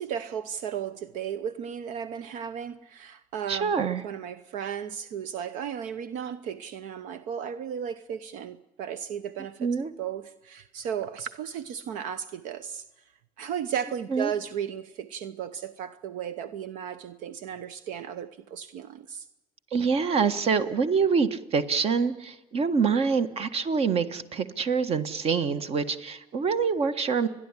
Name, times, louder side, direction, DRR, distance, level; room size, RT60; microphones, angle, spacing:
voice 1, 0.0-3.7 4.0-12.8 13.4-19.3, right 8 dB, 80° right, 0.9 m, -35 dB
voice 2, 3.5-4.0 9.6-9.9 14.1-14.3 19.7-27.3, right 5 dB, 50° right, 1.6 m, -25 dB
29.5 x 11.0 x 9.9 m
cardioid pair, 105°, 13 cm